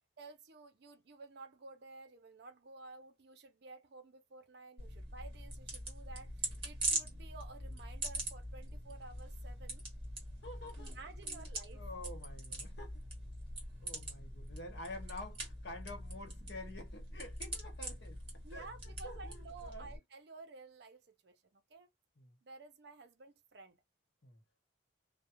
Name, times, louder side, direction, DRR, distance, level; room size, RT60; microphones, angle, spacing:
voice 1, 0.2-9.8 10.8-11.8 18.4-21.9 22.4-23.8, right 3 dB, 55° right, 0.5 m, -53 dB
sound 1, 4.8-20.0, right 1 dB, 30° right, 1.3 m, -43 dB
voice 2, 10.4-10.9 11.2-13.0 13.8-18.2 18.5-18.7 19.0-20.0 22.2-22.4 24.2-24.4, left 1 dB, 60° left, 1.0 m, -49 dB
2.3 x 2.1 x 2.8 m
head